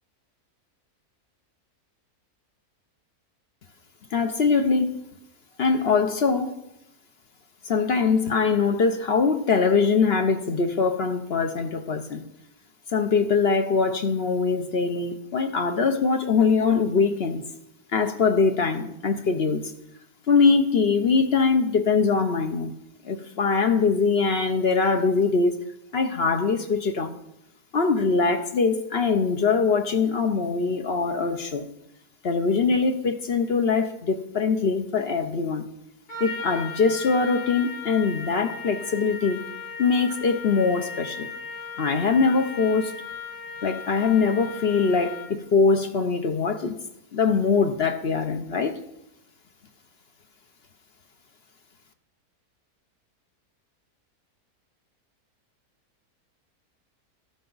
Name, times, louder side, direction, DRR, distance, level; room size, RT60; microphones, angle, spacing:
voice 1, 4.1-5.0 5.6-6.5 7.6-12.2 12.9-17.4 17.9-19.7 20.3-22.7 23.0-25.6 25.9-27.2 27.7-31.7 32.2-35.7 36.2-39.4 39.8-41.3 41.8-42.9 43.6-46.8 47.1-48.8, left 4 dB, 50° left, 0.9 m, -22 dB
Trumpet, 36.1-45.4, left 5 dB, 80° left, 3.4 m, -37 dB
12.5 x 12.5 x 4.0 m
omnidirectional pair, 1.6 m